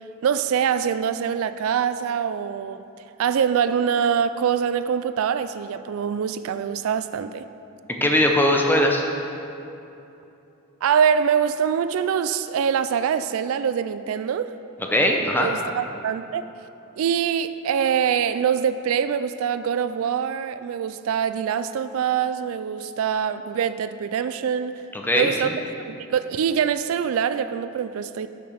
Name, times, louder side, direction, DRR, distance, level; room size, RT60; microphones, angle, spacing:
voice 1, 0.2-2.8 3.2-7.4 10.8-14.5 15.4-16.5 17.0-24.8 25.1-28.3, right 7 dB, 75° right, 11 dB, 0.3 m, -24 dB
voice 2, 8.0-9.0 14.9-15.5 25.1-25.5, left 1 dB, 10° left, 1 dB, 0.7 m, -20 dB
6.7 x 5.9 x 6.5 m, 2.8 s
head